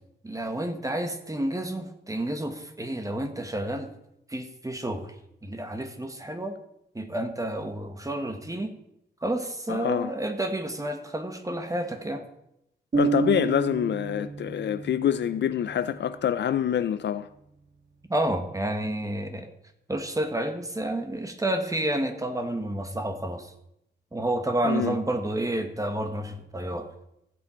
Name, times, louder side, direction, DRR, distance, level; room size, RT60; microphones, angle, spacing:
voice 1, 0.2-3.9 4.3-5.1 5.4-6.6 6.9-8.7 9.2-12.2 18.1-19.5 19.9-23.5 24.1-26.9, right 1 dB, 20° right, 1.3 m, -30 dB
voice 2, 9.7-10.1 12.9-17.3 24.6-25.0, left 9 dB, 75° left, 0.4 m, -26 dB
sound 1, 12.9-16.7, right 5 dB, 40° right, 1.6 m, -31 dB
15.0 x 7.5 x 4.4 m
wide cardioid pair, 105°, 18 cm